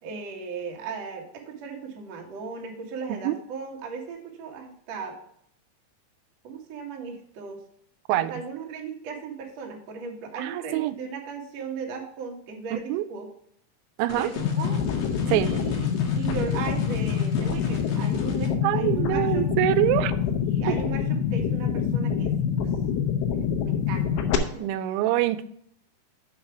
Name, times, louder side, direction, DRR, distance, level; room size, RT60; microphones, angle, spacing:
voice 1, 0.0-5.2 6.4-7.6 8.1-13.3 14.1-14.8 15.3-15.9 16.1-19.5 20.4-22.3 23.6-24.2 24.5-24.6 24.9-25.0, right 5 dB, 60° right, 1 dB, 1.8 m, -36 dB
voice 2, 10.4-11.0 12.7-13.0 14.0-14.3 15.3-15.7 18.6-20.1 20.7-20.8 24.6-25.4, right 14 dB, 85° right, 14 dB, 2.9 m, -25 dB
sound 1, 14.1-18.5, left 4 dB, 60° left, 1.7 m, -40 dB
sound 2, 14.4-24.4, left 7 dB, 85° left, 3.3 m, -26 dB
7.4 x 5.5 x 5.8 m, 0.69 s
omnidirectional pair, 5.2 m